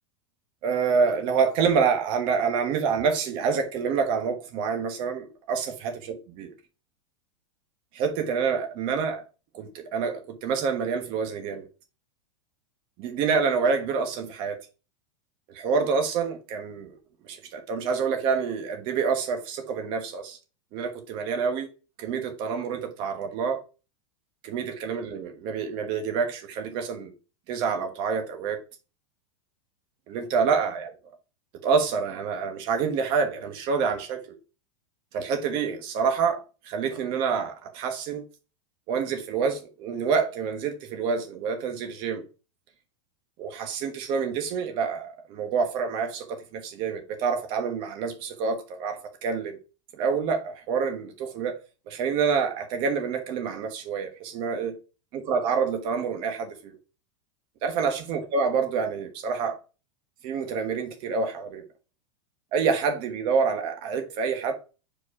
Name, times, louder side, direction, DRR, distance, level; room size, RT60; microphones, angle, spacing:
voice 1, 0.6-6.1 6.4-6.5 7.9-9.2 9.5-11.6 13.0-14.6 15.5-17.0 17.2-20.4 20.7-21.7 22.0-23.6 24.4-27.1 27.5-28.6 30.1-30.9 31.6-34.3 35.1-38.2 38.9-42.2 43.4-49.6 49.9-51.6 51.9-54.8 55.3-56.8 57.6-59.6 60.2-61.6 62.5-64.5, right 5 dB, 30° right, 1.2 m, -27 dB
5.1 x 4.6 x 4.7 m
supercardioid pair, 175°, 16 cm